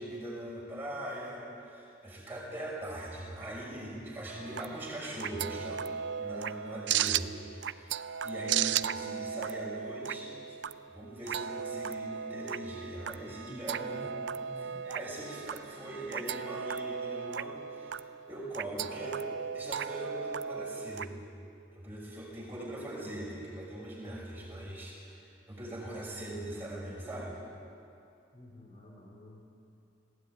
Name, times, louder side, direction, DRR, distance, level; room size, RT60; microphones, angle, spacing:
voice 1, 0.0-7.9 8.2-10.6 10.9-14.0 14.6-18.0 18.3-19.2 19.5-21.1 21.7-27.4, right 1 dB, 10° right, -5 dB, 5.9 m, -41 dB
sound 1, 4.3-21.0, right 8 dB, 70° right, 0.5 m, -36 dB
voice 2, 13.2-14.8 17.7-17.8 28.3-29.4, left 1 dB, 35° left, -2 dB, 2.4 m, -50 dB
20.0 x 16.5 x 9.5 m, 2.6 s
head